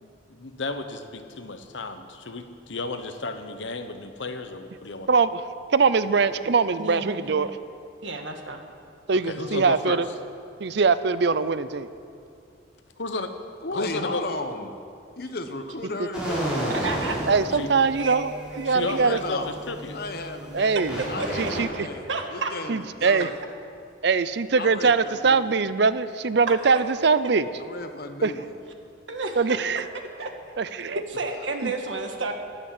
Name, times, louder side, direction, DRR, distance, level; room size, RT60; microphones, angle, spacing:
voice 1, 0.0-5.1 9.1-10.0 13.0-13.4 13.7-14.2 17.5-17.7 18.6-20.0, left 3 dB, 75° left, 8 dB, 1.1 m, -33 dB
voice 2, 5.1-5.4 5.7-7.6 9.1-10.1 10.6-11.9 17.3-19.2 20.5-21.0 21.4-21.9 22.7-23.3 24.0-27.5 28.2-28.3 29.4-29.8 30.6-31.0 31.6-31.7, right 4 dB, 60° right, 14 dB, 0.5 m, -22 dB
voice 3, 6.8-7.5 8.0-8.6 16.7-17.2 17.9-18.9 21.0-21.1 21.4-21.5 21.9-22.5 29.1-29.6 30.2-30.3 31.1-32.3, right 3 dB, 80° right, 4 dB, 1.6 m, -32 dB
voice 4, 13.6-14.7 15.2-16.9 18.8-19.6 19.9-20.8 21.1-23.3 24.5-25.5 27.6-28.5, left 2 dB, 55° left, 7 dB, 1.1 m, -35 dB
sound 1, 16.1-21.6, right 1 dB, 5° right, 4.8 m, -32 dB
12.0 x 11.5 x 8.5 m, 2.4 s
head